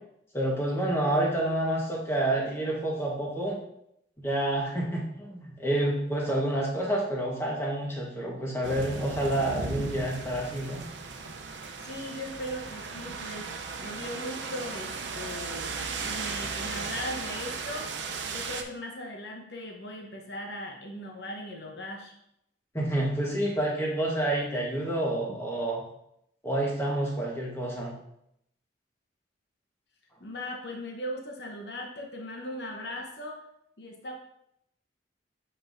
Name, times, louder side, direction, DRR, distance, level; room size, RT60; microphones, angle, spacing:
voice 1, 0.3-3.6 4.2-10.8 22.7-25.8 26.4-27.9, right 1 dB, 15° left, -3 dB, 1.2 m, -28 dB
sound 1, 8.6-18.6, right 4 dB, 75° right, 0.7 m, -36 dB
voice 2, 11.8-15.8 16.0-17.9 18.3-22.1 25.3-25.4 30.2-33.4 33.8-34.1, left 1 dB, 65° left, 1 dB, 0.9 m, -38 dB
7.7 x 5.4 x 2.6 m, 0.76 s
head